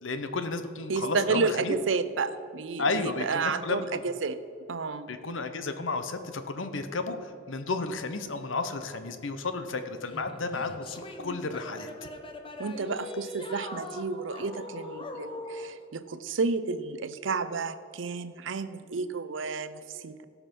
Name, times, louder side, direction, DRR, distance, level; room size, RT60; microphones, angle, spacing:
voice 1, 0.0-1.7 2.8-4.0 5.1-11.9, left 3 dB, 90° left, 9 dB, 0.9 m, -32 dB
voice 2, 0.9-4.4 4.7-5.1 12.6-20.2, right 4 dB, 75° right, 13 dB, 0.6 m, -31 dB
sound 1, 10.1-15.8, left 2 dB, 30° left, 1.0 m, -41 dB
17.0 x 5.8 x 5.4 m, 2.4 s
head